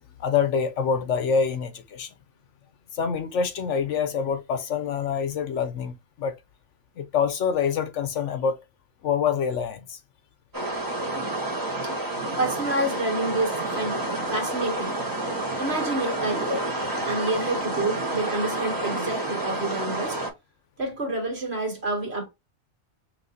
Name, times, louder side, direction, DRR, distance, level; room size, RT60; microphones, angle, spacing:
voice 1, 0.2-2.1 2.9-6.3 7.0-8.6 9.0-10.0, left 6 dB, 65° left, 0.9 m, -26 dB
sound 1, 10.5-20.3, right 2 dB, 15° right, 1.1 m, -29 dB
voice 2, 12.4-15.0 15.6-16.7 17.1-20.2 20.8-22.3, right 2 dB, 50° right, 2.1 m, -28 dB
5.8 x 2.7 x 2.6 m
omnidirectional pair, 1.4 m